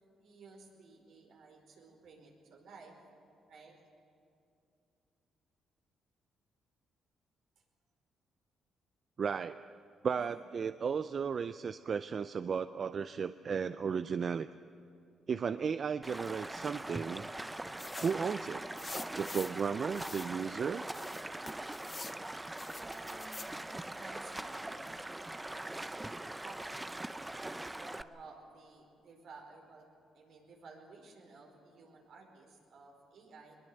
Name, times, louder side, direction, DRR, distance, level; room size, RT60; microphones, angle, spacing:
voice 1, 0.2-3.0 3.5-3.8 15.6-15.8 22.8-26.9 27.4-29.9 30.1-33.6, right 3 dB, 70° right, 2 dB, 4.8 m, -55 dB
voice 2, 9.2-9.8 10.0-14.5 15.3-17.3 18.0-18.7 19.2-20.9, right 6 dB, 50° right, 12 dB, 0.5 m, -34 dB
Stream, 16.0-28.0, right 1 dB, 10° right, 0.7 m, -42 dB
sound 1, 17.8-18.2 18.8-19.6 19.9-20.3 20.9-22.2 22.6-23.5, left 4 dB, 30° left, 0.5 m, -47 dB
21.5 x 21.0 x 7.9 m, 2.6 s
cardioid pair, 90°, 0 cm